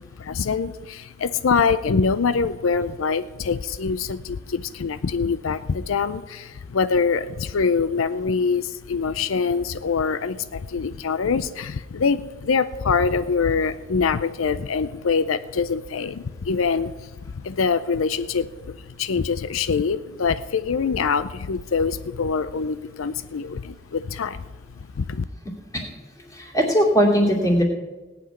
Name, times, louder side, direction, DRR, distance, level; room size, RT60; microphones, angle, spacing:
voice 1, 0.2-24.5 25.0-25.2, left 5 dB, 80° left, 13 dB, 0.5 m, -24 dB
voice 2, 26.3-27.6, equal, 15° left, -1 dB, 2.6 m, -19 dB
18.0 x 6.0 x 9.3 m, 1.2 s
head